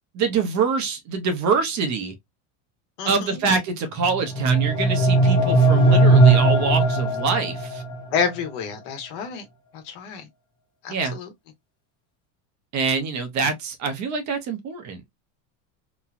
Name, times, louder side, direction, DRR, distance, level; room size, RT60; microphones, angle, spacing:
voice 1, 0.1-2.1 3.0-7.8 10.9-11.1 12.7-15.0, right 5 dB, 40° right, 0.8 m, -25 dB
voice 2, 3.0-3.5 8.1-9.4 9.7-10.3 10.8-11.3, left 6 dB, 60° left, 1.2 m, -29 dB
sound 1, 4.0-8.0, right 2 dB, 10° left, 0.5 m, -18 dB
3.0 x 2.2 x 2.4 m
supercardioid pair, 130°, 46 cm